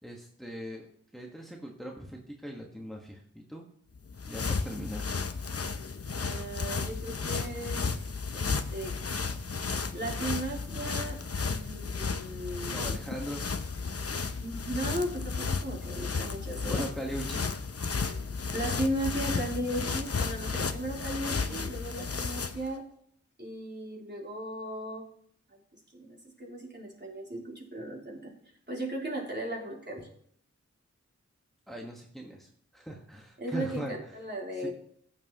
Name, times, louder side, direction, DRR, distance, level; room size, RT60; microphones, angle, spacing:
voice 1, 0.0-0.9 1.1-3.7 4.2-5.1 12.7-13.4 16.7-17.6 31.7-34.0 34.6-34.7, equal, ahead, -1 dB, 1.5 m, -40 dB
sound 1, 3.9-22.7, left 4 dB, 55° left, 0.7 m, -33 dB
voice 2, 6.2-7.8 8.3-8.9 9.9-12.8 14.4-16.9 18.5-22.8 23.4-25.0 25.5-28.3 28.7-30.1 33.4-34.7, right 1 dB, 35° right, -3 dB, 3.6 m, -36 dB
15.5 x 7.6 x 3.0 m, 0.63 s
wide cardioid pair, 50°, 29 cm